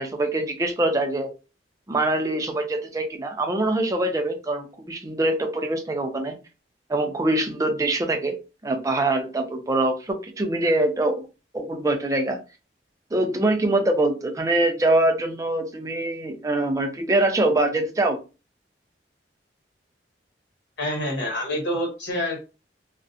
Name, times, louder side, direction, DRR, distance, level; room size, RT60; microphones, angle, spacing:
voice 1, 0.0-1.3 1.9-6.4 6.9-8.4 8.6-11.3 11.5-12.4 13.1-18.2, right 2 dB, 20° right, 4 dB, 0.4 m, -24 dB
voice 2, 20.8-22.4, left 1 dB, 80° left, -1 dB, 1.2 m, -27 dB
2.3 x 2.1 x 2.6 m, 0.31 s
head